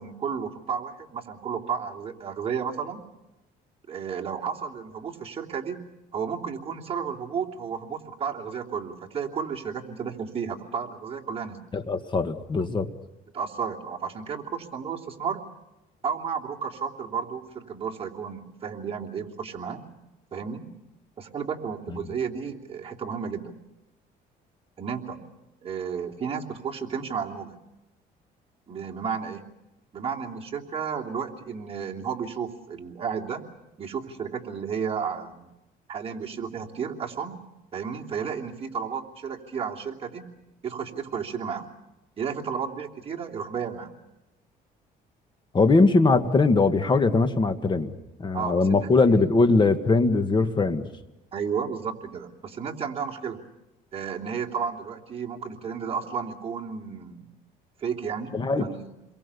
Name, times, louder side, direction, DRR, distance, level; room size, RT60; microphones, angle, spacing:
voice 1, 0.0-3.0 3.9-5.9 6.1-11.6 13.3-15.4 16.0-19.8 20.3-20.7 21.2-23.5 24.8-25.2 25.6-27.6 28.7-29.5 29.9-33.4 33.8-35.5 35.9-37.4 37.7-40.3 40.6-41.7 42.2-43.9 48.3-49.3 51.3-53.4 53.9-57.3 57.8-58.9, right 6 dB, 35° right, -1 dB, 3.1 m, -32 dB
voice 2, 11.7-12.9 45.5-47.9 48.2-50.9 58.3-58.6, left 3 dB, 25° left, 8 dB, 1.8 m, -21 dB
29.0 x 23.0 x 7.0 m, 0.95 s
cardioid pair, 110°, 17 cm